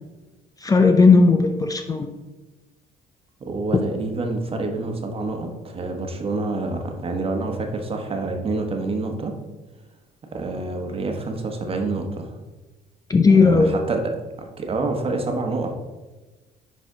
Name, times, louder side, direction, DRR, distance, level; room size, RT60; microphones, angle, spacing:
voice 1, 0.6-2.1 13.1-13.7, left 4 dB, 20° left, 6 dB, 0.5 m, -15 dB
voice 2, 3.4-9.4 10.3-12.3 13.3-14.0 14.4-15.7, right 3 dB, 35° right, 3 dB, 1.2 m, -27 dB
10.0 x 4.0 x 3.8 m, 1.2 s
cardioid pair, 110°, 17 cm